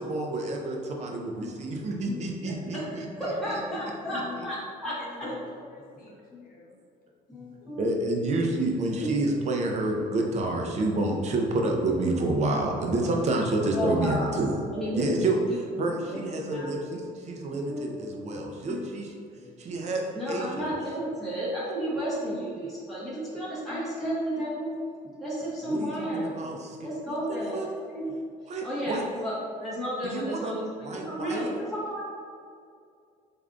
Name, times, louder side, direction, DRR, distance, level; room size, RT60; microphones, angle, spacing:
voice 1, 0.0-3.1 7.8-14.5 14.9-15.4 15.8-19.1 19.6-20.7 25.6-26.9 27.3-27.7 28.5-29.0 30.0-30.5 30.8-31.5, right 2 dB, 40° right, 0 dB, 0.6 m, -29 dB
voice 2, 2.7-5.3 6.3-6.5 7.3-7.9 8.9-9.1 13.7-14.4 14.7-15.1 15.5-15.6 16.5-16.7 17.7-18.9 19.4-28.1 28.4-29.3 29.6-32.0, equal, ahead, -9 dB, 0.8 m, -33 dB
voice 3, 5.0-6.8 15.0-15.1 16.1-16.2 16.9-17.0 28.7-28.8, left 1 dB, 60° left, -3 dB, 0.9 m, -44 dB
3.5 x 3.3 x 2.5 m, 2.3 s
cardioid pair, 110°, 17 cm